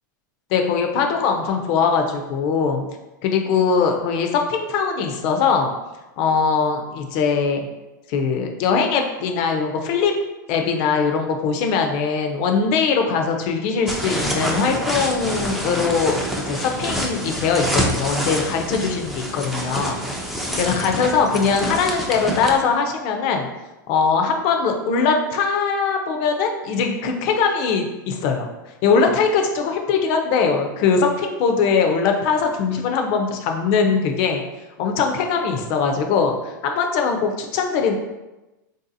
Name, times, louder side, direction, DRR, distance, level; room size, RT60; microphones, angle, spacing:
voice 1, 0.5-2.9 3.2-5.7 6.2-7.7 8.1-10.1 10.5-16.2 16.5-20.0 20.5-23.5 23.9-28.5 28.8-34.4 34.8-37.9, left 5 dB, 50° left, 4 dB, 0.5 m, -21 dB
sound 1, 13.9-22.6, equal, ahead, 0.4 m, -26 dB
3.5 x 2.7 x 2.6 m, 1.1 s
hypercardioid pair, 110°, 11 cm